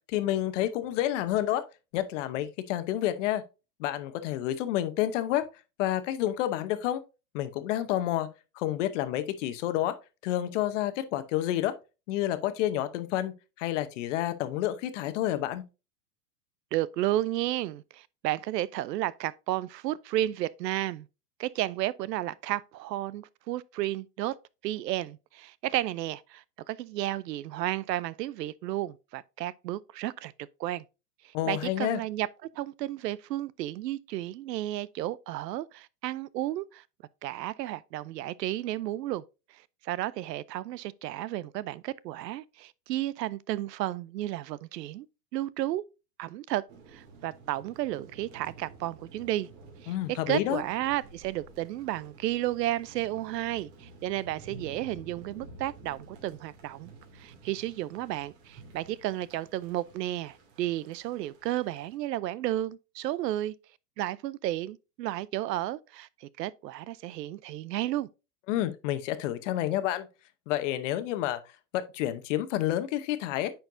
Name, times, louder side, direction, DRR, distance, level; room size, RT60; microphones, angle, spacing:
voice 1, 0.1-1.6 1.9-3.4 3.8-5.5 5.8-7.0 7.3-8.3 8.6-10.0 10.2-11.7 12.1-15.6 31.3-32.0 49.9-50.6 68.5-70.1 70.5-71.4 71.7-73.5, left 13 dB, 50° left, 0.9 m, -29 dB
voice 2, 16.7-21.1 21.4-24.4 24.6-30.3 30.6-30.8 31.5-32.3 32.6-36.8 37.2-39.2 39.5-45.1 45.3-45.8 46.2-46.6 46.9-49.5 49.8-49.9 50.3-63.5 64.0-68.1, right 14 dB, 90° right, 0.6 m, -32 dB
sound 1, 46.7-62.0, right 3 dB, 45° right, 2.6 m, -51 dB
9.3 x 4.5 x 2.6 m
supercardioid pair, 145°, 47 cm